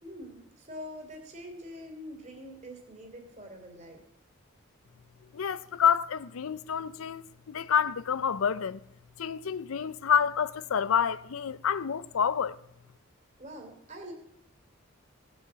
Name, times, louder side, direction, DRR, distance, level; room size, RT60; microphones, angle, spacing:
voice 1, 0.0-4.0 13.4-14.1, equal, 35° right, 2.9 m, -44 dB
voice 2, 5.3-8.8 9.2-12.6, left 7 dB, 85° left, 0.5 m, -28 dB
16.5 x 7.1 x 7.4 m
head